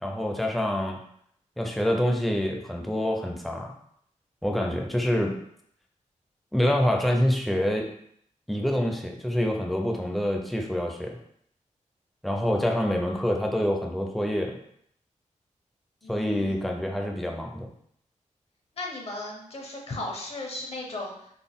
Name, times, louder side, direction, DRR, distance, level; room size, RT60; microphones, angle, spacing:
voice 1, 0.0-1.0 1.6-3.7 4.4-5.4 6.5-7.9 8.5-11.2 12.2-14.6 16.1-17.7, equal, ahead, 1 dB, 0.4 m, -26 dB
voice 2, 16.0-16.6 18.8-21.3, left 2 dB, 50° left, 0 dB, 0.7 m, -37 dB
4.0 x 2.1 x 3.5 m, 0.69 s
wide cardioid pair, 150°, 13 cm